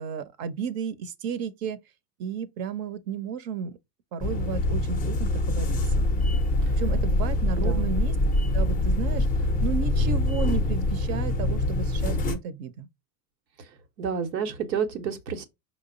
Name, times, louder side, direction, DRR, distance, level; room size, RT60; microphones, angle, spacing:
voice 1, 0.0-1.8 2.2-3.8 4.1-6.0 6.8-8.1 8.5-9.3 9.6-12.9, right 7 dB, 45° right, 0.6 m, -33 dB
sound 1, 4.2-12.4, left 2 dB, 15° left, 0.4 m, -24 dB
voice 2, 7.5-7.9 14.0-15.4, right 6 dB, 90° right, 0.9 m, -30 dB
5.0 x 2.0 x 3.7 m
hypercardioid pair, 100°, 49 cm